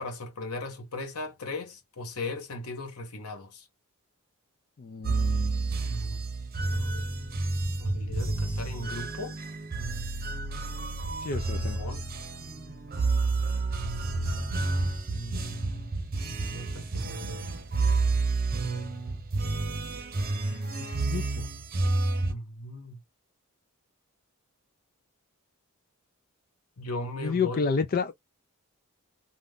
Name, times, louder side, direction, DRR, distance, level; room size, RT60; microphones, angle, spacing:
voice 1, 0.0-3.6 5.8-6.2 6.7-7.0 7.8-9.4 11.5-12.0 15.1-15.9 16.3-17.5 22.3-23.0 26.8-27.6, left 2 dB, 90° left, 1.2 m, -38 dB
voice 2, 4.8-5.7 11.2-11.8 20.5-21.5 27.2-28.1, left 5 dB, 40° left, 0.4 m, -31 dB
sound 1, 5.0-22.3, right 3 dB, 45° right, 0.8 m, -30 dB
2.6 x 2.4 x 3.5 m
head